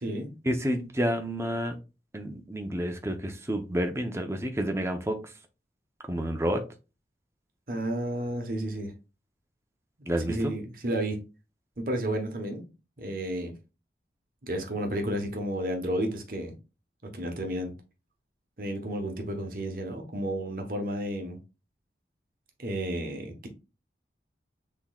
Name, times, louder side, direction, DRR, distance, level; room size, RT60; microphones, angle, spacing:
voice 1, 0.4-1.7 2.1-5.2 6.1-6.6 10.1-10.5, equal, 15° right, 0.6 m, -29 dB
voice 2, 7.7-8.9 10.0-11.2 11.8-12.6 13.0-13.5 14.4-16.5 17.0-17.7 18.6-21.4 22.6-23.5, right 1 dB, 50° right, 1.0 m, -32 dB
6.1 x 3.6 x 2.3 m
head